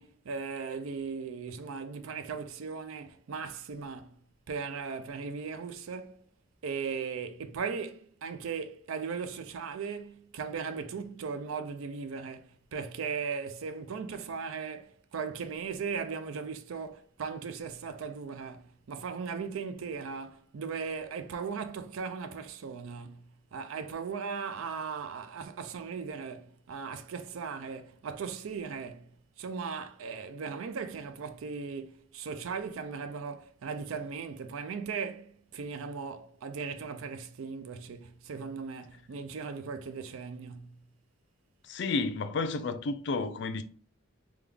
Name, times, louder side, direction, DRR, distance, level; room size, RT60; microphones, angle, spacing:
voice 1, 0.0-4.2 4.5-6.2 6.6-29.1 29.4-40.8, right 5 dB, 80° right, 0.4 m, -38 dB
voice 2, 41.6-43.6, left 3 dB, 55° left, 0.3 m, -31 dB
3.5 x 2.3 x 3.3 m
head